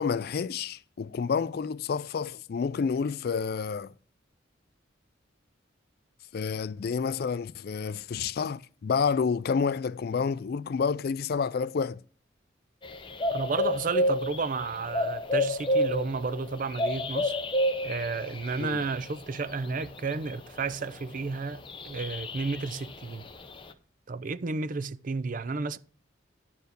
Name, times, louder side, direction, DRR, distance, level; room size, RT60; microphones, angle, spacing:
voice 1, 0.0-3.9 6.3-12.0 18.6-18.8, left 5 dB, 50° left, 0.3 m, -29 dB
sound 1, 12.8-21.0 21.7-23.7, left 1 dB, 25° left, 0.8 m, -30 dB
voice 2, 13.3-17.4 17.8-23.2 24.1-25.8, right 4 dB, 40° right, 0.5 m, -32 dB
10.5 x 4.7 x 6.6 m
head